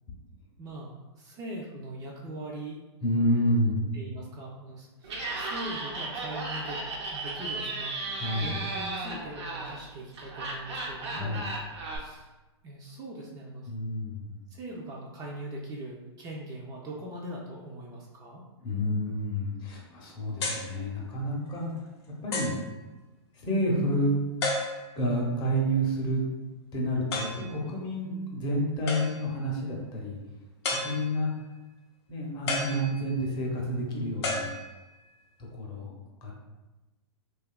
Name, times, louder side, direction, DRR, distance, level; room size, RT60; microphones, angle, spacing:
voice 1, 0.6-2.8 3.9-8.0 8.4-11.5 12.0-12.3 12.6-13.7 14.5-18.4 30.8-31.0, right 1 dB, 25° right, -2 dB, 0.4 m, -41 dB
voice 2, 3.0-3.9 8.1-8.6 11.0-11.5 13.7-14.3 18.6-21.7 22.2-22.6 23.3-24.2 25.0-26.2 26.7-30.2 30.7-31.3 32.1-34.6 35.5-35.9 36.2-36.3, equal, 30° left, -2 dB, 0.6 m, -29 dB
Laughter, 5.0-12.0, right 3 dB, 75° right, 0.6 m, -35 dB
sound 1, 20.4-20.7 21.5-21.6 22.3-22.7 24.4-25.0 27.1-27.5 28.9-29.4 30.6-31.3 32.5-33.3 34.2-35.1, left 2 dB, 65° left, 0.7 m, -33 dB
2.7 x 2.3 x 2.2 m, 1.1 s
hypercardioid pair, 115°, 15 cm